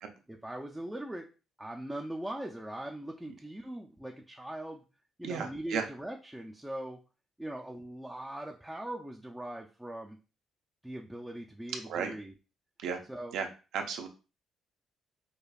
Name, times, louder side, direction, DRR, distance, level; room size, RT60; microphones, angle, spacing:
voice 1, 0.3-1.2 1.6-4.8 5.2-7.0 7.4-10.2 10.8-12.3 13.1-13.4, right 1 dB, 5° right, 0 dB, 0.4 m, -40 dB
voice 2, 5.2-5.8 11.9-12.1 12.8-13.0 13.3-13.5 13.7-14.1, right 6 dB, 80° right, 5 dB, 0.6 m, -33 dB
5.0 x 2.3 x 2.3 m, 0.33 s
cardioid pair, 110°, 0 cm